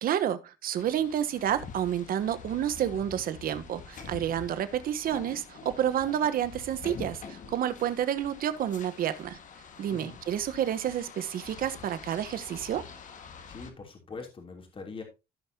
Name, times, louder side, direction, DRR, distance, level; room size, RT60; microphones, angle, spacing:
voice 1, 0.0-9.4 9.8-12.9, right 10 dB, 60° right, 1.1 m, -30 dB
sound 1, 0.8-13.7, left 6 dB, 50° left, 1.8 m, -46 dB
voice 2, 13.5-15.0, left 4 dB, 30° left, 3.1 m, -43 dB
15.0 x 5.6 x 2.8 m
cardioid pair, 110°, 17 cm